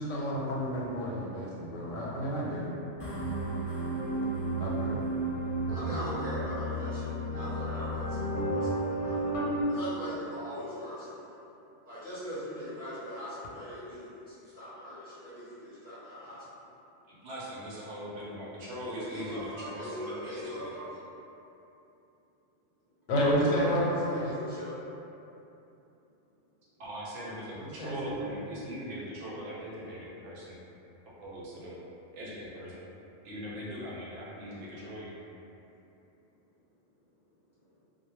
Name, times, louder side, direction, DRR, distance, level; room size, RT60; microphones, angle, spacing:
voice 1, 0.0-2.7 4.6-5.1 23.1-24.3 27.6-28.2, equal, 90° left, -4 dB, 0.9 m, -30 dB
sound 1, 3.0-9.6, right 1 dB, 50° left, 0.4 m, -32 dB
voice 2, 5.6-9.3 9.7-11.3 11.8-16.4 19.1-21.0 23.4-24.7, equal, 20° left, -13 dB, 0.7 m, -40 dB
voice 3, 17.1-20.7 26.8-30.6 31.2-31.8 32.1-32.8 33.2-35.1, equal, 75° right, -6 dB, 0.9 m, -40 dB
2.1 x 2.0 x 3.0 m, 2.9 s
omnidirectional pair, 1.3 m